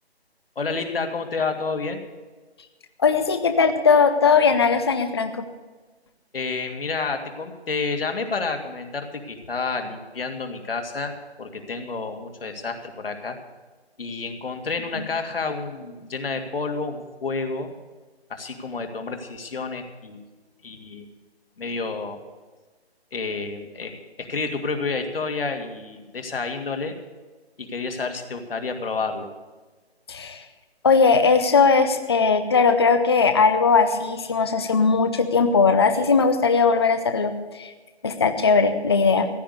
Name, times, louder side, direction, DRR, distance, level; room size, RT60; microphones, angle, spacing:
voice 1, 0.6-2.0 6.3-13.4 14.0-17.7 18.3-20.2 20.6-21.1 21.6-22.2 23.1-26.9 27.6-29.3, left 4 dB, 60° left, 5 dB, 2.2 m, -30 dB
voice 2, 3.0-5.4 15.0-15.1 30.1-30.4 30.8-37.7 38.0-39.3, left 5 dB, 25° left, 8 dB, 0.6 m, -19 dB
15.5 x 10.0 x 6.7 m, 1.3 s
figure-of-eight pair, 160°, 32 cm